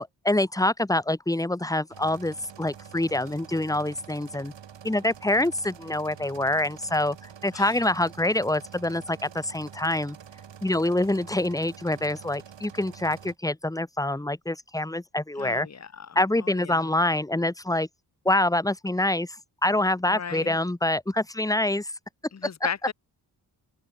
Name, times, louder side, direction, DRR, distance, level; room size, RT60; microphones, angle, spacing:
voice 1, 0.0-4.5 4.8-7.2 7.4-10.2 10.6-15.7 16.1-17.9 18.2-19.4 19.6-21.9 22.4-22.5, left 1 dB, 10° left, 1.6 m, -26 dB
sound 1, 1.9-13.3, right 8 dB, 85° right, 8.0 m, -47 dB
voice 2, 15.4-16.9 20.1-20.6 22.3-22.9, left 7 dB, 40° left, 1.5 m, -36 dB
wide cardioid pair, 120°, 43 cm